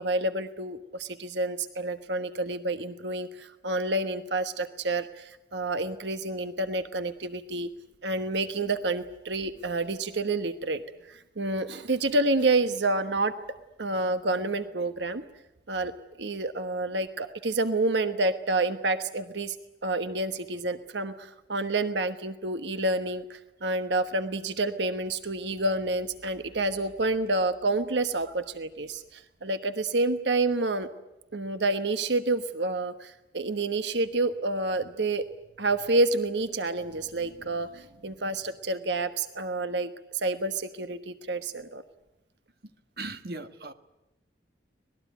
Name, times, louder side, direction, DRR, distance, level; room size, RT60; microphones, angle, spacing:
voice 1, 0.0-7.7 8.0-10.8 11.1-13.3 13.8-15.2 15.7-15.9 16.2-19.6 19.8-30.9 31.3-35.2 35.6-41.8, right 2 dB, 75° right, 9 dB, 1.2 m, -29 dB
voice 2, 43.0-43.7, right 2 dB, 55° right, 8 dB, 1.4 m, -37 dB
25.5 x 19.5 x 9.3 m, 0.95 s
head